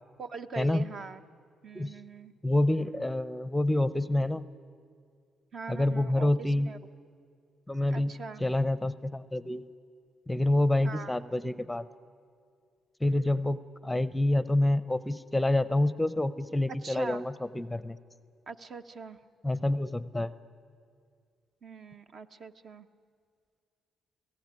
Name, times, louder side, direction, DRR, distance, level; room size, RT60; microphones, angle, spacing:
voice 1, 0.2-1.2 1.6-2.3 5.5-6.3 6.7-6.8 7.9-8.4 10.8-11.2 16.8-17.2 18.5-19.2 21.6-22.9, right 5 dB, 50° right, 8 dB, 1.1 m, -42 dB
voice 2, 2.4-4.4 5.7-6.7 7.7-8.1 8.4-9.7 10.3-11.8 13.0-18.0 19.4-20.3, left 1 dB, 5° left, 15 dB, 0.7 m, -27 dB
28.5 x 18.0 x 9.7 m, 2.2 s
cardioid pair, 90°, 0 cm